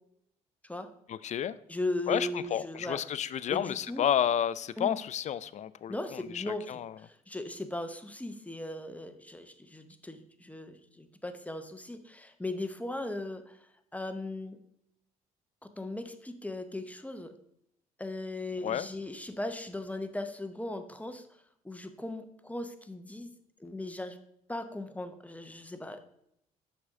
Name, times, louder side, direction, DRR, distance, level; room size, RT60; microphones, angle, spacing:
voice 1, 1.1-1.6 2.1-7.0 18.6-18.9, left 9 dB, 40° left, 17 dB, 0.4 m, -31 dB
voice 2, 1.7-3.0 3.5-4.1 4.8-5.0 5.9-13.6 13.9-14.6 15.8-17.3 18.0-23.3 23.6-24.2 24.5-26.0, left 1 dB, 10° left, 8 dB, 0.8 m, -38 dB
6.0 x 5.5 x 3.6 m, 0.75 s
hypercardioid pair, 50°, 18 cm